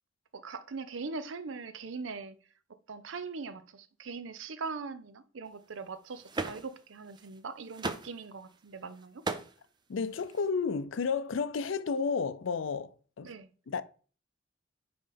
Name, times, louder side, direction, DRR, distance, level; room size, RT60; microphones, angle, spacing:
voice 1, 0.3-2.4 2.9-9.2 13.2-13.5, right 4 dB, 80° right, 0.6 m, -41 dB
sound 1, 6.1-6.8 7.1-7.4 7.7-8.2 9.0-9.5 10.3-10.5, right 3 dB, 25° right, 0.5 m, -37 dB
voice 2, 9.9-13.3 13.7-13.8, left 5 dB, 80° left, 0.5 m, -32 dB
5.5 x 3.9 x 5.1 m
head